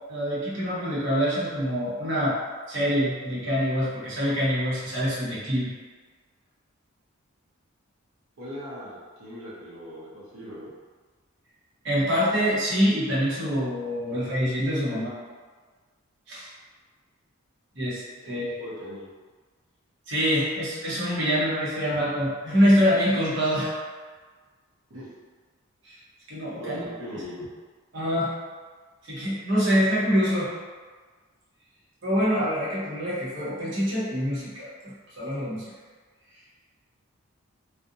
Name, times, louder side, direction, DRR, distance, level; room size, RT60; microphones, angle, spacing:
voice 1, 0.1-2.4 2.7-5.7 11.8-15.1 16.3-16.5 17.8-18.0 18.3-18.5 20.1-23.8 25.8-26.0 26.3-26.9 27.9-28.3 29.1-30.5 32.0-35.6, equal, 55° right, -8 dB, 0.8 m, -25 dB
voice 2, 8.4-10.7 14.0-14.2 14.9-15.0 18.2-19.1 24.9-25.1 26.6-27.5, equal, 90° right, -8 dB, 0.7 m, -40 dB
2.5 x 2.0 x 2.6 m, 1.4 s
head